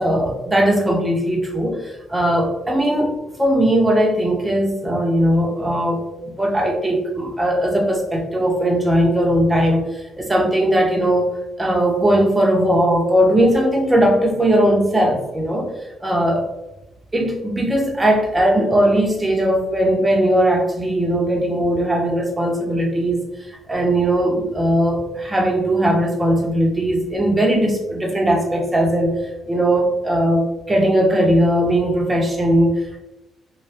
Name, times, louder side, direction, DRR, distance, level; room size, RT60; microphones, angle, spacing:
voice 1, 0.0-11.3 11.6-15.7 16.0-16.5 17.1-23.2 23.7-29.1 29.5-33.0, right 1 dB, 15° right, 1 dB, 0.8 m, -19 dB
2.7 x 2.2 x 3.2 m, 0.95 s
cardioid pair, 90°, 0 cm